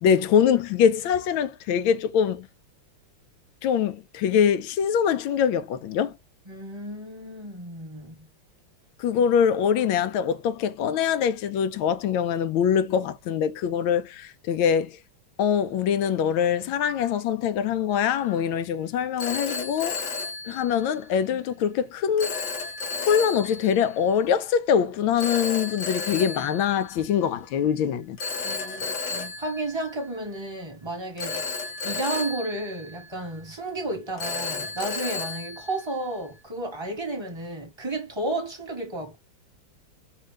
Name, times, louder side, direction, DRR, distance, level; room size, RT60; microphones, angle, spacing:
voice 1, 0.0-2.5 3.6-6.1 9.0-15.0 15.4-20.0 20.5-22.4 23.1-28.2 28.8-28.9, left 8 dB, 80° left, 1.5 m, -23 dB
voice 2, 6.5-8.3 28.4-31.5 31.8-39.2, right 2 dB, 15° right, 1.4 m, -32 dB
Telephone, 17.9-18.2 19.2-21.2 22.2-23.9 25.2-27.4 28.2-30.5 31.2-33.5 34.2-36.4, left 4 dB, 60° left, 1.5 m, -33 dB
5.6 x 2.8 x 3.4 m
omnidirectional pair, 2.2 m